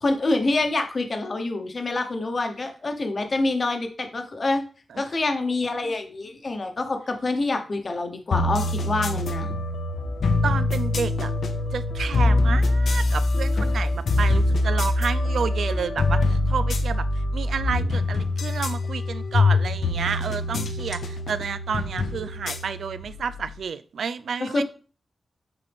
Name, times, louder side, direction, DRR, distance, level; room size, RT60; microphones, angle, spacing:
voice 1, 0.0-4.6 5.0-9.5 24.4-24.6, left 2 dB, 40° left, 1.0 m, -26 dB
sound 1, 8.3-23.6, left 2 dB, 80° left, 0.7 m, -24 dB
voice 2, 10.4-11.3 11.7-24.6, right 6 dB, 80° right, 0.4 m, -30 dB
8.0 x 4.1 x 3.5 m
wide cardioid pair, 120°, 0 cm